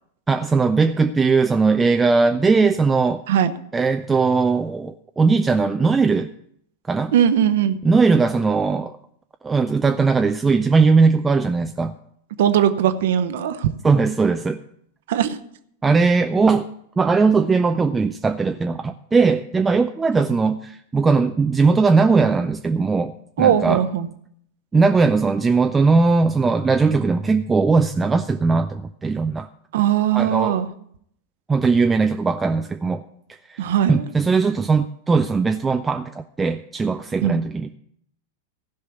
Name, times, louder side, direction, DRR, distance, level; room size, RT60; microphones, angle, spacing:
voice 1, 0.3-3.2 3.7-6.3 6.9-7.1 7.8-8.9 9.4-11.9 13.8-14.6 15.8-16.7 17.0-23.8 24.7-29.5 30.1-30.6 31.5-33.0 33.5-37.7, right 4 dB, 15° right, 7 dB, 0.5 m, -19 dB
voice 2, 7.1-7.8 12.4-13.7 15.1-15.4 23.4-24.1 29.7-30.7 33.6-34.0 37.2-37.4, right 9 dB, 55° right, 11 dB, 0.9 m, -19 dB
15.5 x 5.6 x 8.0 m, 0.69 s
figure-of-eight pair, 90°, 0 cm